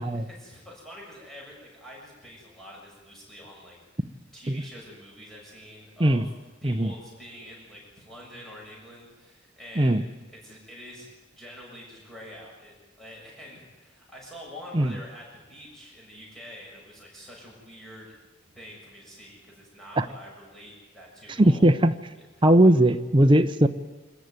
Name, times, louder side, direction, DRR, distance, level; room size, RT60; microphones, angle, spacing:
voice 1, 0.0-4.0 4.3-6.3 6.6-10.0 10.3-18.1 18.5-21.7 22.2-22.5, equal, ahead, -4 dB, 7.2 m, -46 dB
voice 2, 21.3-21.9 22.4-23.7, right 1 dB, 25° right, 7 dB, 0.7 m, -19 dB
25.5 x 14.5 x 9.6 m, 1.2 s
head